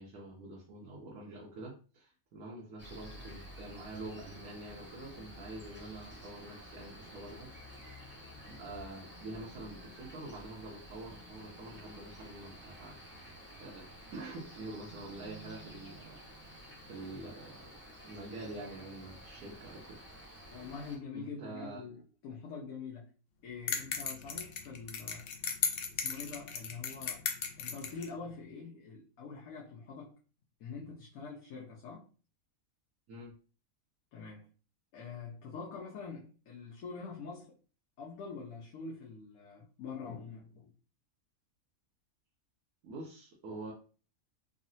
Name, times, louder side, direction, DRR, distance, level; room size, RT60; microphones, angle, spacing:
voice 1, 0.0-7.5 8.5-13.3 13.6-13.9 14.1-16.5 16.9-17.7 18.0-20.0 21.1-21.8 33.1-33.3 42.8-43.7, right 2 dB, 90° right, 1.2 m, -46 dB
Cricket, 2.8-21.0, equal, 10° right, 0.8 m, -51 dB
voice 2, 20.5-23.1 23.4-25.3 25.9-27.3 27.6-30.2 30.6-32.1 34.1-34.5 34.9-37.6 38.0-40.7, left 5 dB, 85° left, 1.1 m, -45 dB
sound 1, 23.7-28.1, left 6 dB, 65° left, 0.6 m, -36 dB
3.7 x 2.0 x 2.6 m
omnidirectional pair, 1.5 m